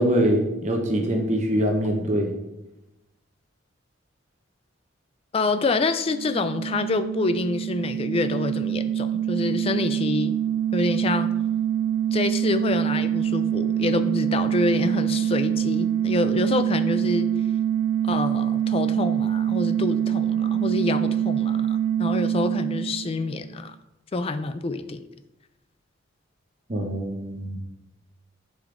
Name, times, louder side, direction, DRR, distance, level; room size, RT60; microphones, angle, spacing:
voice 1, 0.0-2.3 26.7-27.6, equal, 35° right, 2 dB, 0.8 m, -23 dB
voice 2, 5.3-10.4 10.7-11.3 12.1-17.3 18.0-23.8 24.1-25.0, left 3 dB, 30° left, 10 dB, 0.3 m, -27 dB
sound 1, 6.0-23.5, right 10 dB, 80° right, 0.4 m, -25 dB
7.9 x 5.1 x 2.5 m, 0.94 s
head